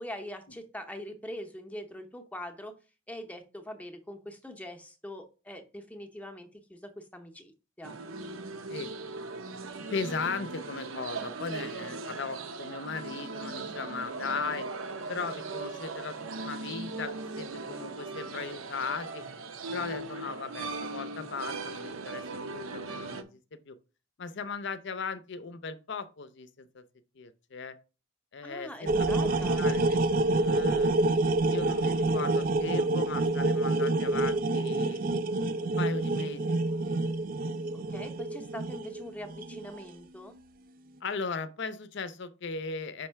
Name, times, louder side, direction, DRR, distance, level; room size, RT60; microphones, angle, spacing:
voice 1, 0.0-2.7 3.1-7.5 7.8-7.9 28.4-29.6 37.9-40.4, left 1 dB, 5° left, 0.7 m, -43 dB
sound 1, 7.8-23.2, right 3 dB, 75° right, 0.7 m, -39 dB
voice 2, 9.9-14.7 15.1-19.2 19.7-23.8 24.2-26.8 27.2-27.7 28.3-31.0 31.5-35.0 35.6-37.0 41.0-43.1, left 4 dB, 55° left, 0.6 m, -38 dB
sound 2, 28.9-39.8, right 2 dB, 40° right, 0.3 m, -27 dB
5.3 x 3.2 x 5.6 m
head